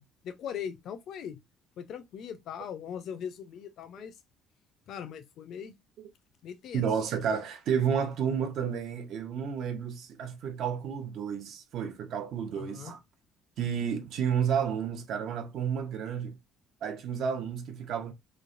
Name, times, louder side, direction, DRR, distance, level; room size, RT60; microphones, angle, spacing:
voice 1, 0.0-1.4 1.8-4.1 4.9-5.7 6.4-6.9 12.5-12.9, left 8 dB, 50° left, 0.5 m, -40 dB
voice 2, 6.7-13.0 13.6-16.4 16.8-18.1, right 7 dB, 50° right, 0.6 m, -31 dB
3.1 x 2.0 x 2.5 m
cardioid pair, 170°, 0 cm